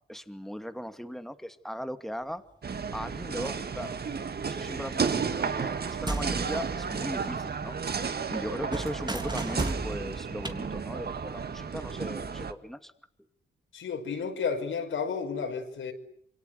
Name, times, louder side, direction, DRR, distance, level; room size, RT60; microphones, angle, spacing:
voice 1, 0.1-2.4 2.9-4.0 4.5-12.9, equal, ahead, 2.4 m, -38 dB
sound 1, 2.6-12.5, right 5 dB, 50° right, 2.1 m, -33 dB
sound 2, 5.7-7.6 7.9-10.6, right 2 dB, 20° right, 3.4 m, -36 dB
voice 2, 13.7-15.9, left 5 dB, 75° left, 5.7 m, -32 dB
27.5 x 24.0 x 8.1 m
cardioid pair, 65°, 20 cm